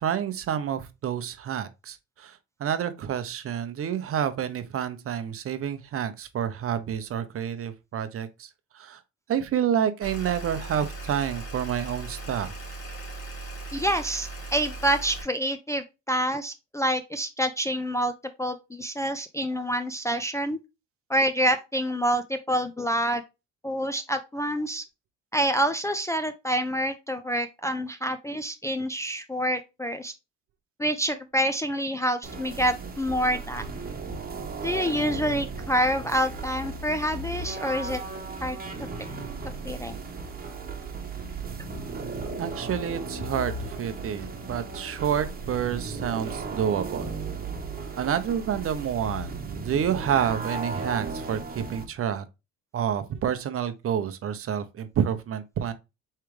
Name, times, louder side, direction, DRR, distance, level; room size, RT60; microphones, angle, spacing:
voice 1, 0.0-9.0 9.3-12.5 42.4-47.1 48.0-52.2 52.7-55.7, right 9 dB, 45° right, 0.7 m, -29 dB
sound 1, 10.0-15.2, right 2 dB, 50° left, 2.5 m, -38 dB
voice 2, 13.7-18.1 18.4-20.6 21.1-23.2 23.6-24.8 25.3-30.1 30.8-33.6 34.6-38.0 38.4-38.6 39.6-39.9, equal, 10° left, 0.4 m, -27 dB
sound 2, 32.2-51.8, right 3 dB, 30° right, 1.2 m, -36 dB
4.8 x 3.3 x 3.1 m
cardioid pair, 90°, 31 cm